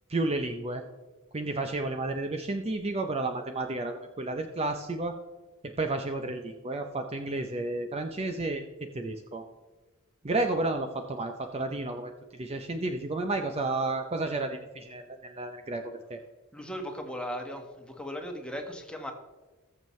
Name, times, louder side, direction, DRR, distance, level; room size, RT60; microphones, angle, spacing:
voice 1, 0.1-0.8 1.3-5.1 5.6-8.6 8.9-9.4 10.2-16.2, right 2 dB, 30° right, 6 dB, 0.6 m, -32 dB
voice 2, 16.5-19.1, equal, 5° left, 3 dB, 1.3 m, -37 dB
19.5 x 7.2 x 3.1 m, 1.2 s
head